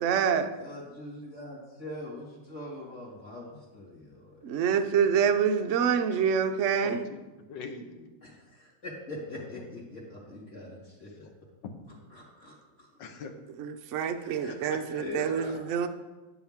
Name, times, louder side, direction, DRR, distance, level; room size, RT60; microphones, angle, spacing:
voice 1, 0.0-0.5 4.4-7.0 13.6-15.9, right 7 dB, 70° right, 0.7 m, -26 dB
voice 2, 0.6-4.7 8.2-11.3 12.1-12.9 14.2-14.5 15.0-15.6, left 1 dB, 40° left, 2.4 m, -42 dB
voice 3, 6.8-7.2 7.5-8.1 9.5-9.6 11.6-12.0 13.0-13.3 14.3-15.9, left 4 dB, 70° left, 1.6 m, -44 dB
11.0 x 10.0 x 3.6 m
omnidirectional pair, 2.1 m